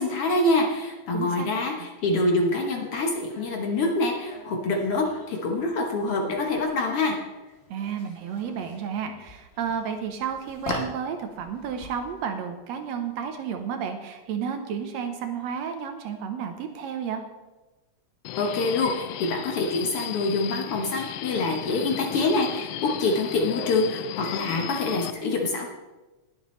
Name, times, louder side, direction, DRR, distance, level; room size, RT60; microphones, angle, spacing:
voice 1, 0.0-7.2 18.4-25.7, left 2 dB, 60° left, 2 dB, 1.7 m, -25 dB
voice 2, 1.1-1.5 7.7-17.2, right 7 dB, 70° right, 6 dB, 1.9 m, -32 dB
sound 1, 2.5-13.8, left 2 dB, 45° left, 0.8 m, -42 dB
Subway metro underground, 18.2-25.1, left 13 dB, 90° left, 1.4 m, -35 dB
20.0 x 7.2 x 3.2 m, 1.1 s
omnidirectional pair, 3.4 m